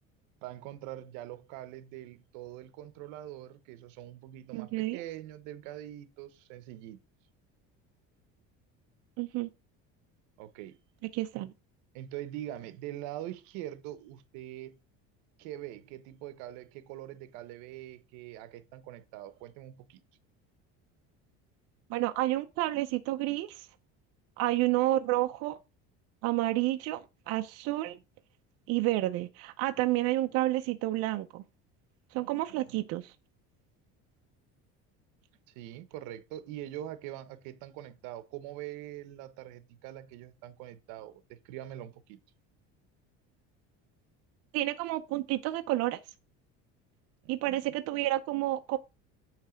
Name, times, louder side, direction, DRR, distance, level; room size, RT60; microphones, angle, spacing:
voice 1, 0.4-7.0 10.4-10.8 11.3-11.4 11.9-14.8 15.4-20.0 32.2-32.8 35.5-42.2 47.2-47.6, right 13 dB, 85° right, 0.9 m, -43 dB
voice 2, 4.5-5.0 9.2-9.5 11.1-11.5 21.9-23.7 24.4-25.6 26.2-28.0 28.7-31.4 32.1-33.1 44.5-46.0 47.3-48.8, right 16 dB, 55° right, 0.5 m, -30 dB
8.9 x 3.3 x 5.0 m
cardioid pair, 175°, 29 cm